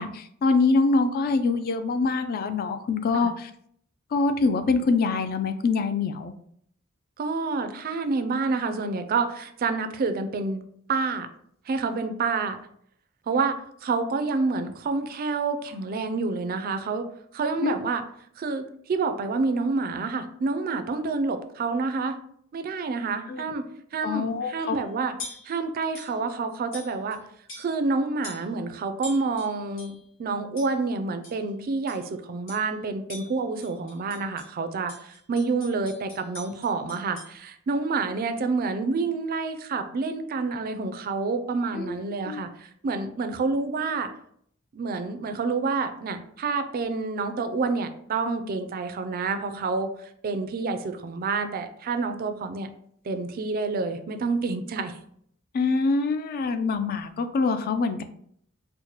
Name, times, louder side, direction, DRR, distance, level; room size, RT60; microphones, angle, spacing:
voice 1, 0.0-3.5 4.1-6.3 17.6-17.7 23.3-23.4 24.0-24.8 41.7-42.0 42.3-42.4 55.5-58.0, left 4 dB, 45° left, 9 dB, 0.3 m, -24 dB
voice 2, 7.2-10.6 10.9-11.3 11.7-12.6 13.3-17.1 17.3-18.0 18.4-22.1 22.5-25.1 25.4-27.2 27.6-44.1 44.7-49.9 50.2-52.7 53.0-55.0, right 4 dB, 45° right, 9 dB, 0.3 m, -28 dB
sound 1, 24.6-24.8 25.2-25.6 25.9-26.2 26.7-27.2 27.5-27.9 28.2-28.6 29.0-30.0 30.6-30.9 31.2-31.5 31.9-32.1 32.5-32.8 33.1-34.5 34.9-37.4, left 2 dB, 65° left, 1.3 m, -43 dB
4.6 x 2.1 x 2.8 m, 0.66 s
head